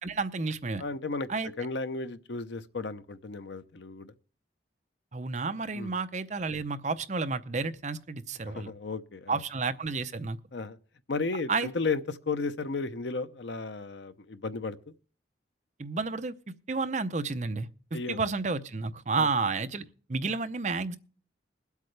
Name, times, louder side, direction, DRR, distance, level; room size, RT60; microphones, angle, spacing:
voice 1, 0.0-0.8 1.3-1.5 5.1-8.7 9.3-10.4 11.5-11.7 15.8-16.3 16.7-17.7 18.1-19.8 20.1-21.0, right 4 dB, 40° right, 0.6 m, -31 dB
voice 2, 0.8-1.3 1.6-4.1 5.7-6.0 8.5-9.4 10.5-10.8 11.1-14.8 17.9-18.2 19.2-19.3, left 3 dB, 75° left, 0.7 m, -34 dB
21.5 x 8.2 x 3.3 m
head